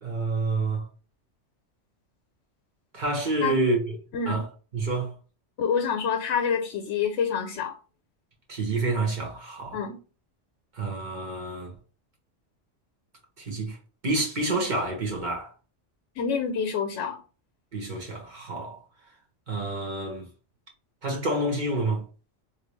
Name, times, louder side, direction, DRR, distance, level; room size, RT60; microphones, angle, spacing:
voice 1, 0.0-0.8 2.9-4.0 4.3-4.4 4.7-5.1 8.5-9.8 10.7-11.7 13.4-13.8 14.0-15.5 17.7-18.8 19.5-20.3 21.0-22.0, right 2 dB, 40° right, 1.2 m, -28 dB
voice 2, 5.6-7.7 9.7-10.0 16.2-17.2, left 6 dB, 90° left, 1.0 m, -27 dB
3.3 x 2.8 x 3.1 m
omnidirectional pair, 1.2 m